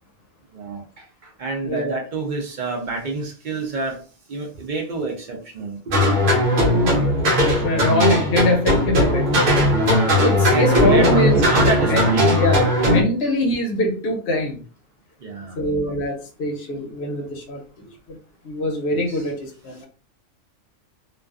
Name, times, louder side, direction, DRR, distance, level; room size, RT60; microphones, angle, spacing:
voice 1, 0.5-4.0 4.3-6.2 10.5-12.4 15.2-15.6 18.9-19.3, right 3 dB, 55° right, 1 dB, 0.5 m, -28 dB
sound 1, 5.9-13.0, equal, 85° right, 1.0 m, -18 dB
voice 2, 6.9-9.3 9.9-10.0 10.2-11.4 11.8-12.1 12.3-14.6 15.6-17.6 18.1-18.2 18.4-19.9, left 1 dB, 60° left, 2 dB, 0.8 m, -23 dB
2.3 x 2.3 x 2.3 m, 0.38 s
omnidirectional pair, 1.3 m